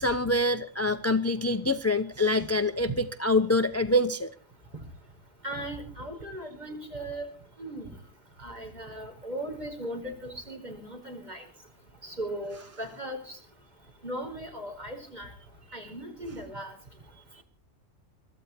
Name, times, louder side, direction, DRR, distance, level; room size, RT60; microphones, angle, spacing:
voice 1, 0.0-4.3 17.4-17.5, left 1 dB, 15° left, 9 dB, 0.7 m, -25 dB
voice 2, 5.4-7.3 7.6-7.9 8.4-11.4 12.0-13.4 14.0-15.3 15.7-16.7, right 1 dB, 35° right, 2 dB, 5.1 m, -37 dB
23.0 x 13.5 x 4.4 m, 0.41 s
omnidirectional pair, 1.3 m